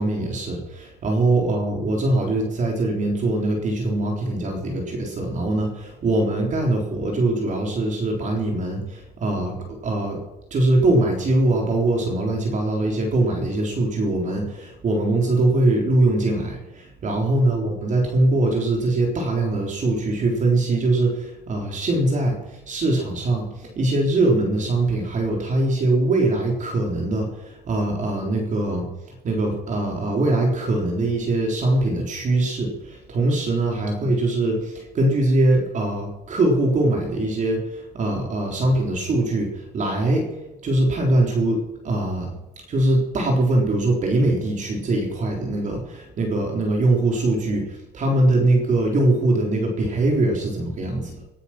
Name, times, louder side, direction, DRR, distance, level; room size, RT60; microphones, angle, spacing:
voice 1, 0.0-10.2 10.5-28.9 29.2-40.3 40.6-42.3 42.7-51.2, right 2 dB, 45° right, 1 dB, 3.8 m, -22 dB
19.0 x 9.9 x 5.9 m, 0.97 s
cardioid pair, 110°, 17 cm